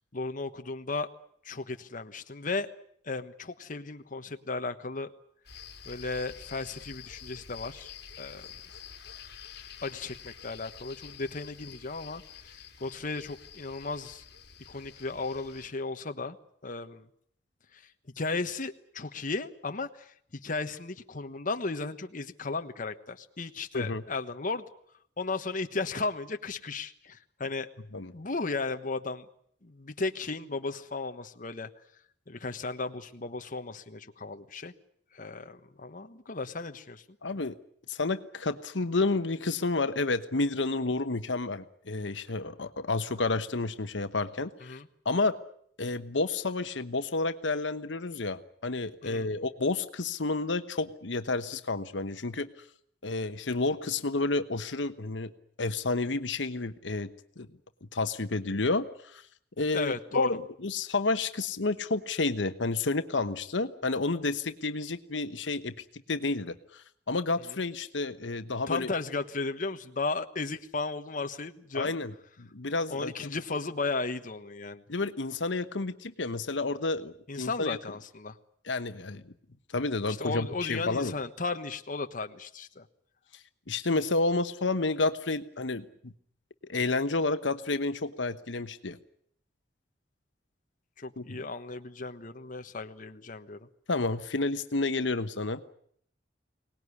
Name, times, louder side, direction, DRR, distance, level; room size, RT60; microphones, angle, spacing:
voice 1, 0.1-1.1 1.4-2.7 3.0-5.1 5.8-7.9 8.2-8.5 9.8-14.2 14.7-16.4 16.6-17.1 17.7-17.8 18.2-20.1 20.4-24.6 25.2-29.2 29.6-31.7 32.3-34.7 35.1-37.0 44.6-44.9 49.0-49.3 59.7-60.4 68.7-71.9 72.9-74.8 77.3-78.4 80.2-82.9 91.0-93.7, left 3 dB, 50° left, 7 dB, 1.3 m, -35 dB
sound 1, 5.4-15.7, left 7 dB, 65° left, 2.6 m, -48 dB
voice 2, 37.2-37.6 37.9-44.8 45.0-45.4 45.8-52.5 53.0-55.3 55.6-57.1 57.4-57.5 57.9-59.2 59.6-68.9 71.7-72.1 72.4-73.3 74.9-77.8 78.6-79.3 79.7-81.1 83.7-86.1 86.6-89.0 91.2-91.4 93.9-95.6, left 3 dB, 85° left, 11 dB, 1.1 m, -30 dB
23.5 x 19.0 x 9.8 m, 0.67 s
head